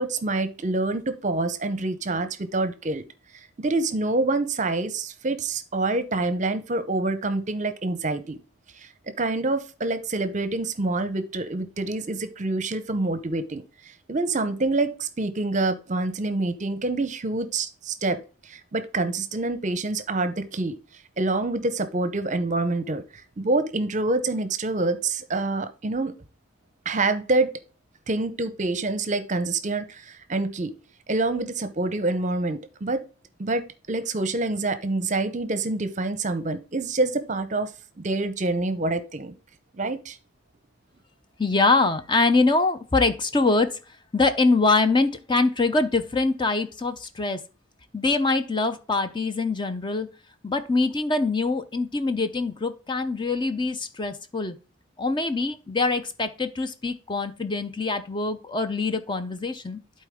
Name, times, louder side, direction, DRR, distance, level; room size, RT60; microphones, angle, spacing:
voice 1, 0.0-3.0 3.6-8.4 8.8-20.7 21.2-23.0 23.4-26.1 26.9-27.5 28.1-30.7 31.1-33.0 33.4-37.7 38.0-39.3 39.7-40.2, right 2 dB, 35° right, 0.7 m, -26 dB
voice 2, 41.4-43.8 44.1-47.4 47.9-50.1 50.4-54.5 55.0-59.8, left 3 dB, 25° left, 0.6 m, -24 dB
11.5 x 4.4 x 3.6 m
head